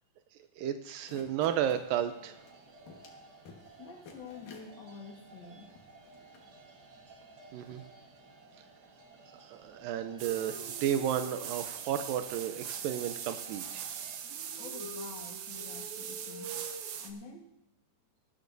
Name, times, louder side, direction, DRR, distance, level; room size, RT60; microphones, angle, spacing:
voice 1, 0.6-2.4 7.5-7.8 9.4-13.9, right 10 dB, 85° right, 8 dB, 2.4 m, -33 dB
sound 1, 0.9-1.9 2.5-2.6 2.9-3.2 3.5-3.8 4.1-4.7 5.3-5.4 5.7-6.5 7.2-7.3 7.6-7.9, left 5 dB, 75° left, 3.1 m, -53 dB
sound 2, 1.8-14.2, right 3 dB, 50° right, 1.3 m, -56 dB
voice 2, 3.8-5.7 14.6-16.5 17.0-17.5, left 5 dB, 45° left, 1 dB, 1.6 m, -48 dB
sound 3, 10.2-17.1, right 7 dB, 70° right, 2.2 m, -40 dB
19.0 x 13.5 x 2.7 m, 0.89 s
omnidirectional pair, 3.9 m